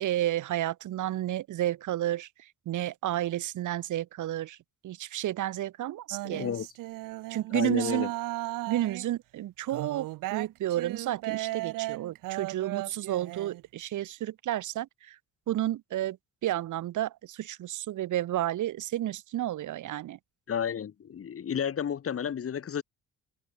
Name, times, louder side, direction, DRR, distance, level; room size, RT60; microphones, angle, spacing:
voice 1, 0.0-2.3 2.7-4.6 4.8-6.5 7.3-8.1 8.7-15.2 15.5-16.2 16.4-20.2, right 13 dB, 65° right, 2.1 m, -31 dB
sound 1, 6.1-9.1 9.7-13.6, right 18 dB, 85° right, 1.7 m, -36 dB
voice 2, 6.2-6.7 7.5-8.1 20.5-22.8, left 8 dB, 45° left, 4.3 m, -32 dB
cardioid pair, 115°, 32 cm